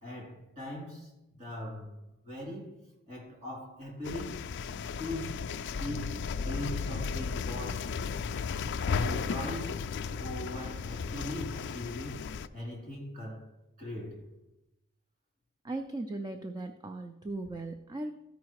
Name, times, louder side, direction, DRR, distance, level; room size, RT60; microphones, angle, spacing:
voice 1, 0.0-2.0 2.2-2.8 3.1-4.4 5.0-8.0 8.8-13.5 13.8-14.3, left 1 dB, 35° right, 3.9 m, -40 dB
sound 1, 4.0-12.5, left 5 dB, 55° left, 0.3 m, -35 dB
voice 2, 15.6-18.1, right 2 dB, 20° right, 0.4 m, -38 dB
13.0 x 5.1 x 4.8 m
head